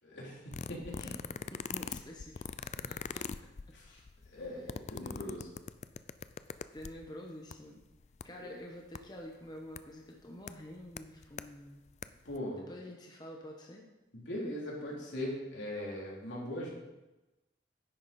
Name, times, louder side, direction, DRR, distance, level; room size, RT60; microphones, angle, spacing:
voice 1, 0.0-1.1 2.8-3.2 3.7-4.0 4.3-5.5 8.4-8.6 12.2-12.6 14.1-16.7, left 1 dB, 85° left, -4 dB, 3.4 m, -40 dB
sound 1, 0.5-7.1 7.5-7.6 7.8-8.2 8.9-9.0 9.8-9.9 10.5-10.6 11.0-11.5 11.9-12.0 12.3-12.4, left 6 dB, 40° left, 0.3 m, -41 dB
voice 2, 1.5-2.4 2.9-3.2 4.3-4.4 6.7-7.8 8.2-11.8 12.7-13.8, left 1 dB, 25° left, 0 dB, 1.0 m, -48 dB
10.5 x 8.7 x 4.3 m, 1.0 s
head